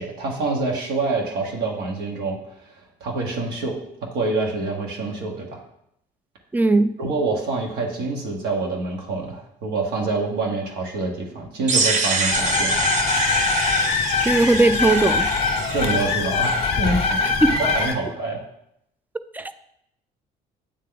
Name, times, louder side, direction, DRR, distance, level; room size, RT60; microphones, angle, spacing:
voice 1, 0.0-2.7 3.0-5.6 7.0-12.9 15.7-17.3 17.6-18.4, right 3 dB, 75° right, 0 dB, 1.2 m, -26 dB
voice 2, 6.5-6.9 14.2-15.3 17.4-17.6 19.3-19.5, right 2 dB, 10° right, 12 dB, 0.3 m, -18 dB
sound 1, 11.7-16.5, right 3 dB, 45° right, 0.8 m, -25 dB
sound 2, 12.3-17.9, left 4 dB, 35° left, 0.9 m, -22 dB
8.3 x 3.3 x 3.8 m, 0.76 s
cardioid pair, 110°, 17 cm